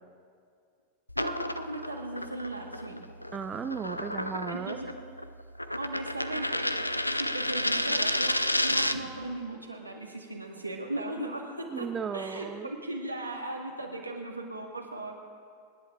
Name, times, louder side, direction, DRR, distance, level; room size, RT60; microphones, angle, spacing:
sound 1, 1.1-9.2, left 1 dB, 85° left, 0.4 m, -31 dB
voice 1, 1.2-3.0 4.5-4.9 5.7-6.7 7.1-11.9 12.1-15.2, right 1 dB, 85° right, 0 dB, 1.8 m, -37 dB
voice 2, 3.3-4.8 11.7-12.7, right 6 dB, 20° right, 9 dB, 0.5 m, -35 dB
26.0 x 10.5 x 3.7 m, 2.2 s
figure-of-eight pair, 90°, 0 cm